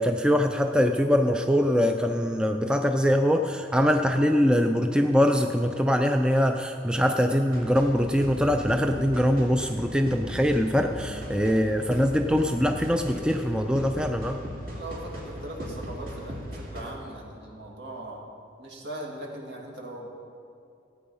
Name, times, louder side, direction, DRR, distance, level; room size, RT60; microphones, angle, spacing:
voice 1, 0.0-14.4, equal, 5° right, 5 dB, 0.4 m, -23 dB
sound 1, 7.5-16.8, equal, 50° right, 2.6 m, -38 dB
voice 2, 10.8-11.6 14.6-18.3 18.6-20.1, right 1 dB, 65° right, -2 dB, 2.2 m, -40 dB
16.5 x 8.8 x 5.5 m, 2.5 s
head